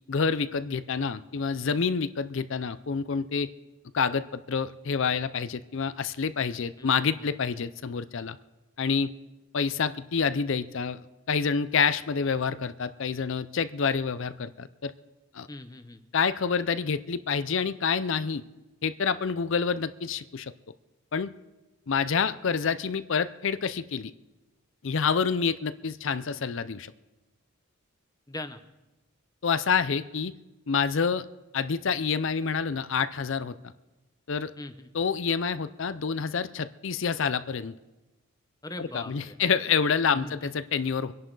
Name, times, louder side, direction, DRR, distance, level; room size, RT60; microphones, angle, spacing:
voice 1, 0.1-3.5 3.9-8.4 8.8-9.1 9.5-11.0 11.3-14.9 15.3-15.5 16.1-18.4 18.8-20.5 21.1-21.3 21.9-24.1 24.8-26.9 29.4-30.3 30.7-31.2 31.5-33.5 34.3-34.5 34.9-37.7 38.8-41.1, left 6 dB, 55° left, 13 dB, 0.5 m, -27 dB
voice 2, 6.8-7.1 15.5-16.0 28.3-28.6 34.6-34.9 38.6-39.4 40.1-40.5, left 2 dB, 15° left, 9 dB, 0.8 m, -40 dB
24.5 x 11.0 x 3.9 m, 1.1 s
head